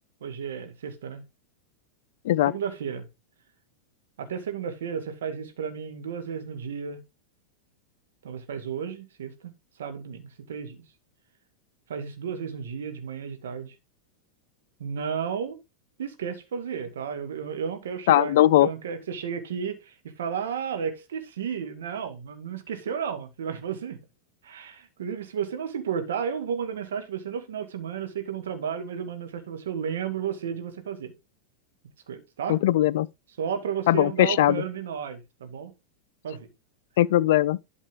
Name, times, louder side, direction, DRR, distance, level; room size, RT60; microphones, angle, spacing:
voice 1, 0.2-1.2 2.5-3.1 4.2-7.0 8.2-9.5 9.8-10.8 11.9-13.7 14.8-15.6 16.0-24.0 24.4-31.1 32.1-32.6 33.4-35.7 36.2-36.5, right 7 dB, 60° right, 2.0 m, -33 dB
voice 2, 18.1-18.7 32.5-33.1 33.9-34.6 37.0-37.6, left 14 dB, 55° left, 0.4 m, -20 dB
12.0 x 5.1 x 3.7 m
figure-of-eight pair, 90°, 0 cm